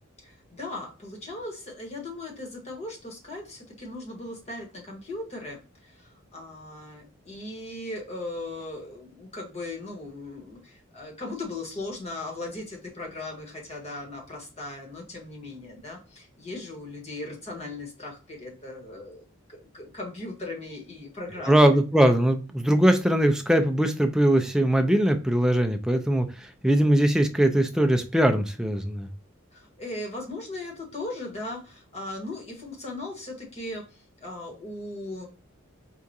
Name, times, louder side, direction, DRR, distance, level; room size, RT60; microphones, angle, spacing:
voice 1, 0.2-21.8 29.5-35.3, left 2 dB, 30° left, 0 dB, 1.3 m, -38 dB
voice 2, 21.5-26.3 26.6-29.1, right 1 dB, 5° right, 6 dB, 0.4 m, -21 dB
4.6 x 2.4 x 2.6 m, 0.34 s
head